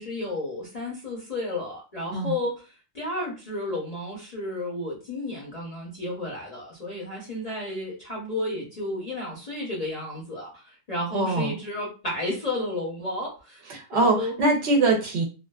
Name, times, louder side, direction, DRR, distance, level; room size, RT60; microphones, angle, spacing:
voice 1, 0.0-2.5 2.9-13.6 13.9-14.3, left 1 dB, 40° left, -4 dB, 0.6 m, -32 dB
voice 2, 11.1-11.5 13.7-15.2, right 2 dB, 65° right, 2 dB, 0.9 m, -23 dB
2.4 x 2.3 x 2.3 m, 0.32 s
omnidirectional pair, 1.4 m